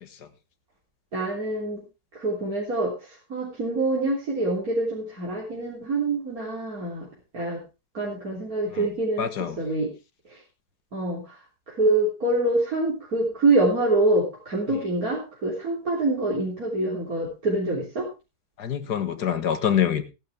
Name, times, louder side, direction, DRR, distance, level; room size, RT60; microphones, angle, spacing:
voice 1, 1.1-1.8 2.2-2.9 3.3-7.1 7.3-7.6 7.9-9.9 10.9-11.4 11.7-18.1, right 2 dB, 60° right, -4 dB, 3.9 m, -25 dB
voice 2, 9.2-9.6 14.7-14.8 18.6-20.0, left 9 dB, 85° left, 10 dB, 2.0 m, -25 dB
16.5 x 11.0 x 3.4 m, 0.28 s
omnidirectional pair, 1.7 m